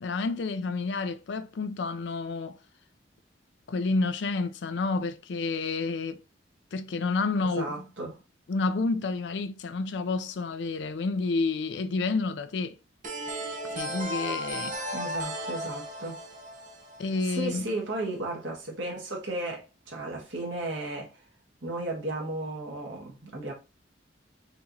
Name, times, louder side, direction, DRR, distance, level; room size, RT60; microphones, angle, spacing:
voice 1, 0.0-2.6 3.7-6.2 6.7-7.7 8.5-12.8 13.6-14.8 17.0-17.7, left 3 dB, 70° left, 0.4 m, -29 dB
voice 2, 7.4-8.2 14.9-16.2 17.2-21.2 21.6-23.5, right 2 dB, 85° right, 1.3 m, -34 dB
sound 1, 13.0-17.7, equal, 45° right, 0.8 m, -35 dB
4.3 x 2.9 x 2.6 m
head